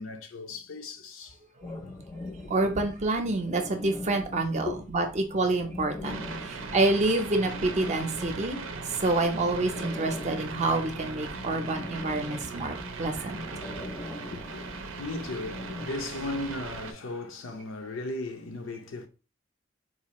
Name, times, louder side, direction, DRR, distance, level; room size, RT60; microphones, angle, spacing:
voice 1, 0.0-1.4 1.8-1.9 2.4-2.5 4.7-4.8 13.6-19.1, left 2 dB, 85° left, 0.6 m, -37 dB
sound 1, 1.6-15.9, left 2 dB, 25° left, 0.5 m, -41 dB
voice 2, 2.5-8.7 9.0-13.4, right 2 dB, 35° right, 0.6 m, -27 dB
sound 2, 6.0-16.9, right 4 dB, 90° right, 0.5 m, -39 dB
4.0 x 2.4 x 3.0 m
head